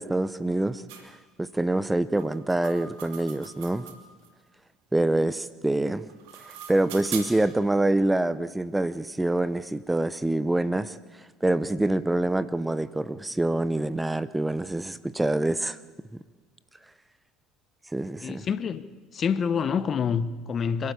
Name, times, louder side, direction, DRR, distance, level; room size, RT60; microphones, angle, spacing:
voice 1, 0.0-3.8 4.9-6.0 6.7-11.0 11.4-15.8 17.9-18.4, right 2 dB, 10° right, 0.8 m, -26 dB
sound 1, 0.9-1.1 2.2-4.3 6.0-7.5, right 8 dB, 80° right, 2.6 m, -41 dB
voice 2, 18.2-18.8 19.1-20.9, left 6 dB, 40° left, 1.0 m, -27 dB
26.5 x 12.5 x 8.6 m
supercardioid pair, 80°, 0 cm